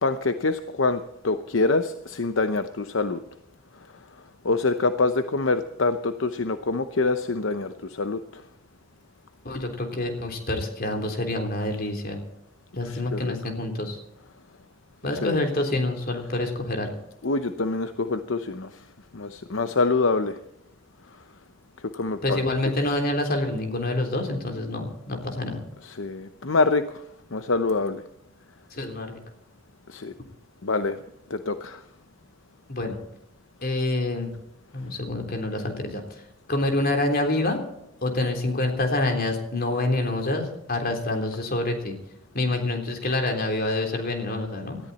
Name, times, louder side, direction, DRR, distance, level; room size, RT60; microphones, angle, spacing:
voice 1, 0.0-3.2 4.4-8.4 12.9-13.3 15.2-15.4 17.2-18.7 19.1-20.4 21.9-22.4 26.0-26.8 27.3-28.0 29.9-30.1 30.6-31.0 31.3-31.8, left 3 dB, 75° left, 9 dB, 0.8 m, -25 dB
voice 2, 9.4-12.2 12.7-14.0 15.0-16.9 22.2-25.6 28.7-29.2 32.7-33.0 33.6-34.3 34.7-36.2 36.5-37.6 38.0-42.0 42.3-44.8, left 2 dB, 50° left, 3 dB, 3.6 m, -27 dB
19.0 x 14.0 x 4.2 m, 0.81 s
head